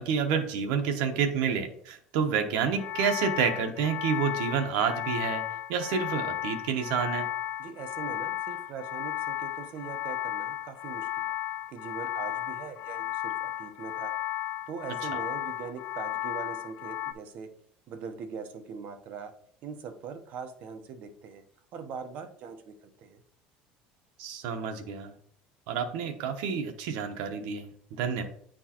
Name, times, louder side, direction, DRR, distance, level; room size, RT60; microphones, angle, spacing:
voice 1, 0.0-5.4 5.7-7.3 24.2-25.1 25.7-28.2, right 6 dB, 80° right, 6 dB, 0.9 m, -29 dB
sound 1, 2.7-17.1, left 13 dB, 60° left, 0.4 m, -34 dB
voice 2, 7.6-11.4 11.7-14.1 14.7-17.5 17.9-19.3 19.6-21.4 21.7-23.2, right 6 dB, 50° right, 8 dB, 0.9 m, -41 dB
9.2 x 4.5 x 2.9 m, 0.62 s
cardioid pair, 145°, 3 cm